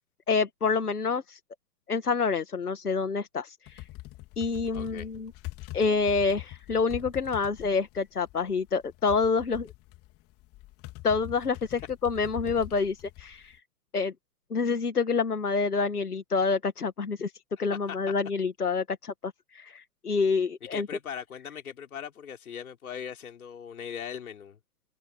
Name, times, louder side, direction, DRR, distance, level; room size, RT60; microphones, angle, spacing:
voice 1, 0.3-1.4 1.9-3.8 4.4-5.3 5.7-9.7 11.0-13.6 13.9-14.1 14.5-17.3 17.6-20.9, left 4 dB, 90° left, 2.0 m, -27 dB
sound 1, 3.7-13.6, left 19 dB, 30° left, 3.8 m, -43 dB
voice 2, 4.7-5.1 17.9-18.1 20.6-24.6, left 8 dB, 70° left, 5.9 m, -40 dB
open air
hypercardioid pair, 115°, 44 cm